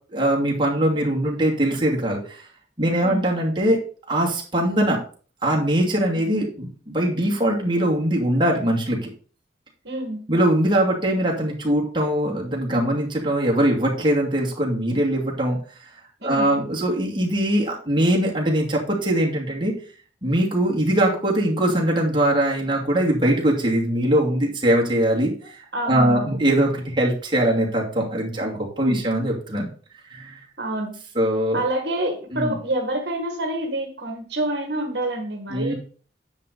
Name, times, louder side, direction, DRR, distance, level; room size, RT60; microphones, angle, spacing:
voice 1, 0.1-2.5 2.8-3.8 4.1-5.0 5.4-9.1 10.3-15.9 16.2-19.7 20.2-29.7 30.1-30.4 31.1-31.6 32.3-32.6 35.5-35.7, right 1 dB, 25° right, -2 dB, 2.5 m, -22 dB
voice 2, 9.8-10.2 16.2-16.5 25.7-26.4 28.3-29.0 30.6-31.0 31.5-35.7, right 1 dB, 60° right, 3 dB, 1.7 m, -27 dB
9.8 x 6.8 x 4.0 m, 0.41 s
head